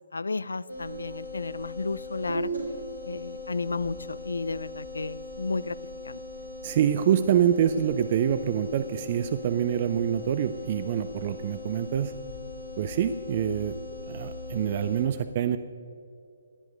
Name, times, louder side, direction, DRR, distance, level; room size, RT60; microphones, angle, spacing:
voice 1, 0.1-2.5 3.1-5.8 6.0-6.2, left 3 dB, 70° left, 19 dB, 0.4 m, -32 dB
sound 1, 0.7-15.0, left 1 dB, 75° right, 3.6 m, -39 dB
voice 2, 6.6-12.1 12.8-13.8 14.1-15.6, right 9 dB, 35° right, 11 dB, 0.5 m, -26 dB
17.5 x 11.0 x 5.2 m, 2.5 s
figure-of-eight pair, 135°, 0 cm